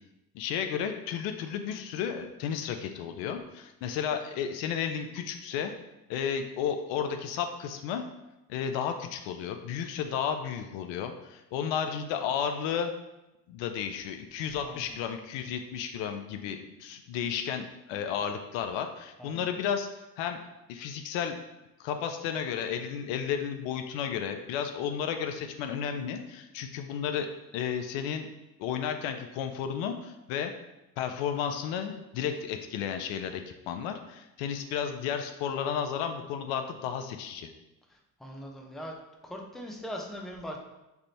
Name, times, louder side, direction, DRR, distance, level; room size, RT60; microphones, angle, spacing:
voice 1, 0.3-5.7 6.1-8.0 8.5-12.9 13.5-19.9 20.2-20.4 20.7-21.4 21.8-27.3 27.5-28.3 28.6-30.5 31.0-37.5, left 8 dB, 70° left, 6 dB, 0.5 m, -33 dB
voice 2, 14.6-15.0 19.2-19.5 37.9-39.0 39.2-40.6, equal, ahead, 0 dB, 0.6 m, -41 dB
3.4 x 2.5 x 4.2 m, 0.95 s
hypercardioid pair, 60°, 46 cm